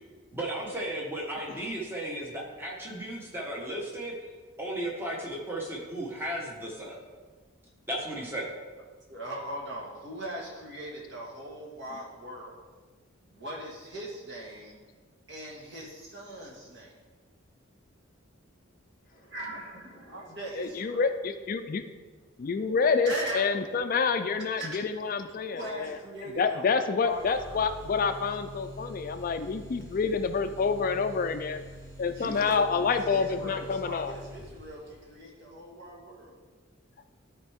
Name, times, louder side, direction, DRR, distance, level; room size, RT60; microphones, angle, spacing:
voice 1, 0.3-4.2 4.6-7.0 7.9-8.5, right 1 dB, 10° right, -2 dB, 1.1 m, -35 dB
voice 2, 8.8-12.7 13.3-14.8 15.3-17.0 19.1-21.0 23.1-23.6 24.6-24.8 25.5-27.6 32.1-32.6 32.9-36.4, right 1 dB, 55° right, -3 dB, 1.8 m, -40 dB
voice 3, 20.6-21.8 22.4-26.0 26.4-31.6 32.0-34.1, left 5 dB, 40° left, 9 dB, 0.3 m, -28 dB
sound 1, 27.0-35.0, equal, 30° right, 2.6 m, -46 dB
12.5 x 4.5 x 3.5 m, 1.4 s
head